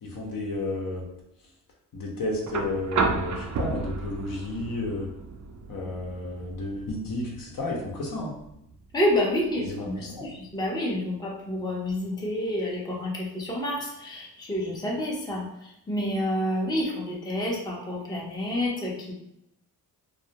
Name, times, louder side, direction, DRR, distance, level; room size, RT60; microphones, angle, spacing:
voice 1, 0.0-1.1 1.9-5.1 5.7-8.3 9.7-10.3, left 2 dB, 55° left, -1 dB, 0.8 m, -32 dB
sound 1, 2.5-10.5 11.9-12.0, right 4 dB, 45° right, 0.4 m, -33 dB
voice 2, 8.9-19.1, left 1 dB, 10° left, -3 dB, 0.6 m, -29 dB
2.4 x 2.1 x 2.8 m, 0.82 s
supercardioid pair, 55°, 42 cm